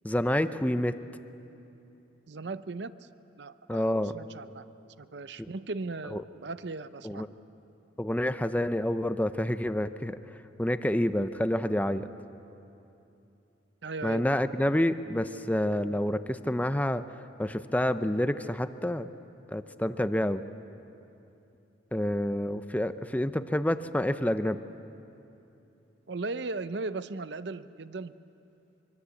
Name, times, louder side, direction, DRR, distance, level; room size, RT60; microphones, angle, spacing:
voice 1, 0.0-1.0 3.7-4.1 5.4-5.5 6.1-6.2 7.0-7.3 8.0-10.2 10.6-12.1 14.0-17.0 17.4-19.1 19.5-20.4 21.9-24.6, left 1 dB, 10° left, 11 dB, 0.6 m, -28 dB
voice 2, 2.3-3.1 3.4-4.6 5.0-7.3 13.8-14.3 26.1-28.1, right 3 dB, 65° right, 13 dB, 0.7 m, -37 dB
24.5 x 24.5 x 8.4 m, 2.8 s
head